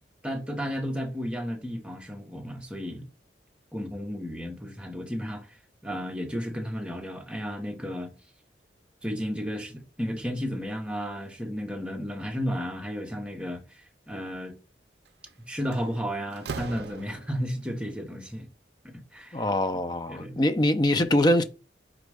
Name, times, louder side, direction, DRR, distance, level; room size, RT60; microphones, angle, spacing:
voice 1, 0.2-3.1 3.7-5.6 5.8-8.1 9.0-14.6 15.5-18.5 18.8-19.5 20.1-20.4, equal, 5° right, 0.7 m, -33 dB
Slam, 15.1-15.3 15.7-17.6, right 4 dB, 65° right, 0.5 m, -39 dB
voice 2, 19.3-21.4, left 1 dB, 25° left, 0.4 m, -23 dB
5.1 x 2.2 x 4.7 m
head